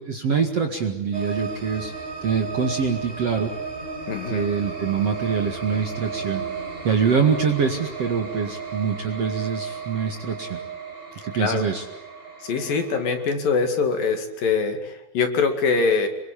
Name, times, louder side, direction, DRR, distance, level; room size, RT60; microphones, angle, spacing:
voice 1, 0.0-1.9 2.2-3.5 4.3-6.4 6.8-10.6 11.2-11.8, right 6 dB, 45° right, 4 dB, 2.4 m, -24 dB
sound 1, 1.1-13.3, right 5 dB, 15° right, 2.9 m, -34 dB
voice 2, 4.1-4.5 11.4-11.6 12.4-16.1, left 5 dB, 60° left, 6 dB, 3.7 m, -23 dB
27.0 x 23.0 x 8.5 m, 0.90 s
omnidirectional pair, 4.9 m